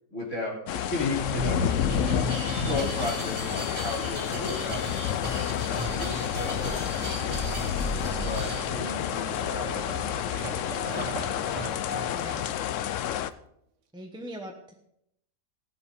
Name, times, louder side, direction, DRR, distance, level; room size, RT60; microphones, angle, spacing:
voice 1, 0.1-1.6 2.7-5.0 5.3-6.6 6.9-11.1, left 2 dB, 45° left, -4 dB, 4.1 m, -35 dB
sound 1, 0.7-13.3, left 11 dB, 70° left, 0.7 m, -30 dB
sound 2, 1.2-8.7, equal, 40° right, 2.6 m, -34 dB
sound 3, 1.5-12.5 13.2-13.3, right 5 dB, 85° right, 1.7 m, -42 dB
voice 2, 12.1-12.5 13.9-14.8, right 1 dB, 5° right, 1 dB, 0.9 m, -40 dB
16.0 x 7.1 x 5.3 m, 0.77 s
omnidirectional pair, 1.8 m